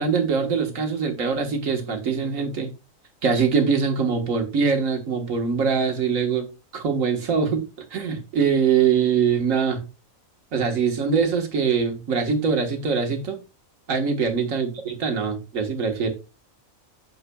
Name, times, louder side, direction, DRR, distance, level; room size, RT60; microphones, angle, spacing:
voice 1, 0.0-2.7 3.2-6.5 6.7-7.7 7.9-9.9 10.5-13.4 13.9-16.1, right 6 dB, 75° right, 1.7 m, -23 dB
8.3 x 6.6 x 2.2 m
omnidirectional pair, 1.4 m